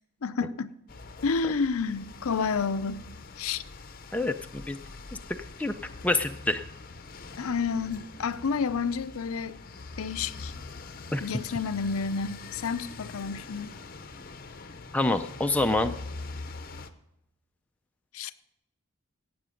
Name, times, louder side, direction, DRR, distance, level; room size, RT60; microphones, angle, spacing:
voice 1, 0.2-0.7 1.2-3.1 3.4-3.6 7.4-9.6 10.0-10.5 11.2-13.7 18.1-18.3, left 5 dB, 75° left, 0.5 m, -30 dB
sound 1, 0.9-16.9, left 3 dB, 40° left, 0.7 m, -44 dB
voice 2, 4.1-4.8 5.6-5.7 6.0-6.6 11.1-11.2 14.9-15.9, left 2 dB, 5° left, 0.4 m, -26 dB
17.0 x 7.9 x 5.1 m
head